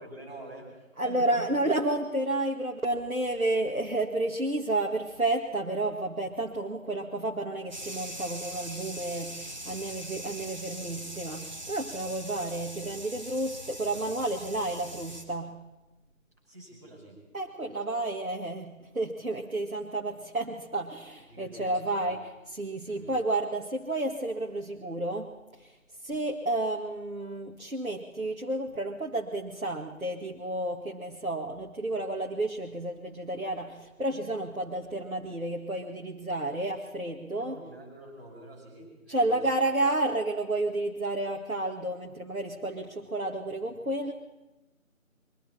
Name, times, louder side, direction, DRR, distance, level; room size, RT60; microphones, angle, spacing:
voice 1, 0.0-1.5 16.4-17.2 17.9-18.0 21.3-22.2 22.8-23.1 37.3-39.4, right 1 dB, 15° right, -9 dB, 5.9 m, -46 dB
voice 2, 1.0-15.6 17.3-25.8 26.0-37.6 39.1-44.1, right 2 dB, 85° right, 0 dB, 2.1 m, -31 dB
sound 1, 7.7-15.2, right 1 dB, 35° right, 3.0 m, -41 dB
26.5 x 23.5 x 4.4 m, 1.0 s
figure-of-eight pair, 175°, 41 cm